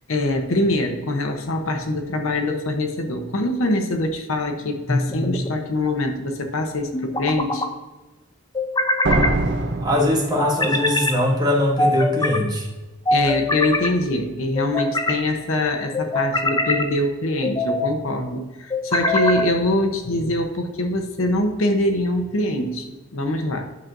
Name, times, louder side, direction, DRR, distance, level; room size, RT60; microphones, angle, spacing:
voice 1, 0.1-7.7 13.1-23.6, left 1 dB, 65° left, 6 dB, 0.8 m, -24 dB
sound 1, 4.9-5.6 6.9-7.7 8.5-9.4 10.4-11.2 11.8-12.4 13.1-13.9 14.6-15.2 15.9-16.9 17.4-17.9 18.7-19.5, left 2 dB, 20° left, 0.5 m, -23 dB
sound 2, 9.0-10.9, right 2 dB, 50° right, 0.6 m, -23 dB
voice 2, 9.8-12.7, left 1 dB, 20° right, 0 dB, 1.0 m, -21 dB
9.4 x 6.0 x 2.6 m, 1.2 s
head